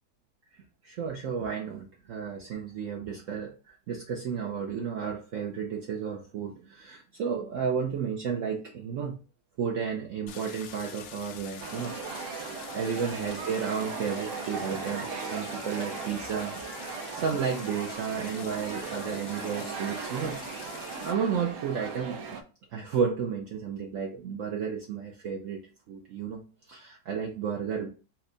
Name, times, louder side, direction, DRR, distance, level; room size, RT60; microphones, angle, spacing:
voice 1, 0.8-9.1 9.6-11.9 12.4-12.5 12.7-16.6 17.1-20.7 21.0-22.4 22.7-25.6 25.9-26.4 26.7-27.9, right 6 dB, 60° right, 1 dB, 0.9 m, -32 dB
Stream, 10.3-21.1, left 7 dB, 75° left, 1.1 m, -45 dB
sound 1, 11.6-22.4, right 5 dB, 85° right, 1.2 m, -38 dB
4.3 x 2.1 x 3.8 m, 0.33 s
omnidirectional pair, 1.8 m